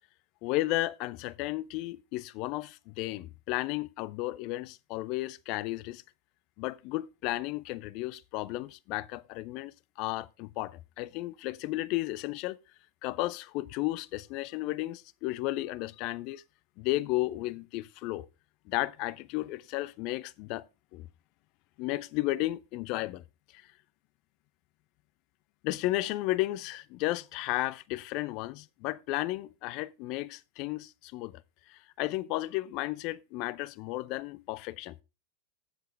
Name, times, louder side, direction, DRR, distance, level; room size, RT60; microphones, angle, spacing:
voice 1, 0.4-6.0 6.6-12.6 13.0-16.4 16.8-18.3 18.7-20.7 20.9-21.1 21.8-23.2 23.5-23.6 25.6-31.4 31.7-35.0, left 18 dB, 40° left, 0.6 m, -33 dB
15.5 x 7.6 x 3.3 m
figure-of-eight pair, 90°, 0 cm